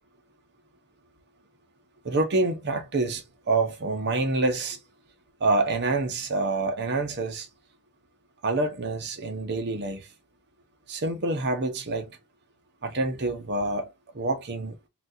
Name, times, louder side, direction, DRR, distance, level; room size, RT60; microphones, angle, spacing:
voice 1, 2.0-4.8 5.4-7.5 8.4-10.1 10.9-12.2 12.8-13.9 14.1-14.7, right 2 dB, 50° right, 0.8 m, -27 dB
4.0 x 2.4 x 2.6 m
head